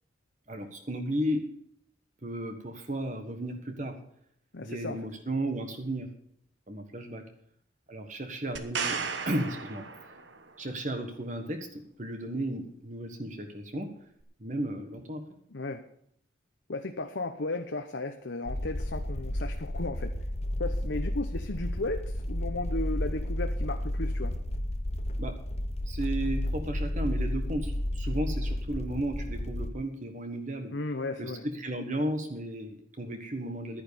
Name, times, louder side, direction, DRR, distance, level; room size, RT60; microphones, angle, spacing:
voice 1, 0.5-1.5 2.2-3.9 4.6-6.1 6.7-7.2 7.9-9.0 9.2-9.8 10.6-13.9 14.4-15.2 25.2-25.4 25.9-30.7 31.2-33.8, right 1 dB, 40° right, 5 dB, 1.4 m, -34 dB
voice 2, 4.5-5.0 15.5-15.8 16.7-20.1 20.6-24.3 30.7-31.4, left 2 dB, 70° left, 5 dB, 0.9 m, -35 dB
sound 1, 8.6-10.5 14.2-14.3, right 5 dB, 70° right, 1.3 m, -35 dB
sound 2, 18.5-29.7, left 1 dB, 35° left, 0.9 m, -32 dB
11.0 x 10.0 x 7.0 m, 0.68 s
head